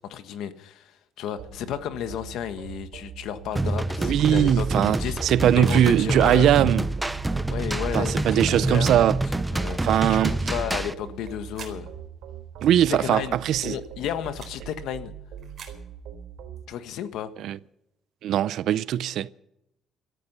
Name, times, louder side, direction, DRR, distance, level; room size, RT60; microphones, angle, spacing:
voice 1, 0.0-5.2 5.5-6.5 7.5-9.2 9.5-9.8 10.1-11.9 12.9-13.3 13.6-15.1 16.7-17.3, left 10 dB, 70° left, 1.4 m, -33 dB
sound 1, 1.4-16.6, right 8 dB, 90° right, 3.9 m, -42 dB
sound 2, 3.5-3.8 5.1-5.9 6.9-7.1 8.2-8.8 9.6-9.8 11.1-11.8 12.6-12.8 13.8-14.6 15.4-15.8, right 7 dB, 35° right, 4.2 m, -47 dB
sound 3, 3.6-10.9, right 2 dB, 10° right, 0.6 m, -27 dB
voice 2, 4.0-6.9 7.9-9.2 9.8-10.3 12.6-13.8 17.4-17.6 18.2-19.3, right 11 dB, 60° right, 0.5 m, -21 dB
18.0 x 14.0 x 5.6 m
cardioid pair, 175°, 0 cm